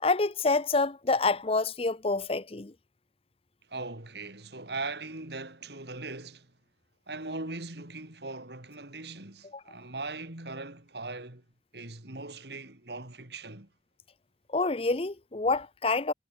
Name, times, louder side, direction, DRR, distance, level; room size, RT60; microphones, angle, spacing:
voice 1, 0.0-2.7 9.5-9.6 14.5-16.1, left 3 dB, 35° left, 0.8 m, -27 dB
voice 2, 3.7-6.5 7.1-11.4 11.7-13.7, right 3 dB, 70° right, 3.7 m, -40 dB
head